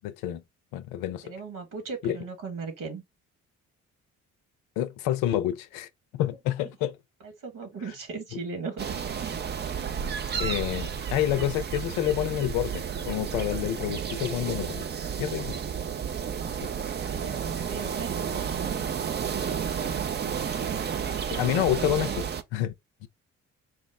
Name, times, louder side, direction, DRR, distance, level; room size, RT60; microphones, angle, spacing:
voice 1, 0.0-0.4 0.7-1.2 2.0-2.2 4.8-6.9 10.4-14.9 15.2-15.5 16.6-16.7 21.3-22.3 22.5-22.7 23.0-23.1, left 12 dB, 60° left, 0.6 m, -28 dB
voice 2, 1.2-3.0 7.2-9.3 9.7-10.0 17.0-20.0 21.6-22.2, right 5 dB, 50° right, 1.7 m, -38 dB
sound 1, 8.8-22.4, right 7 dB, 25° right, 0.6 m, -32 dB
4.5 x 2.0 x 3.5 m
figure-of-eight pair, 45°, 41 cm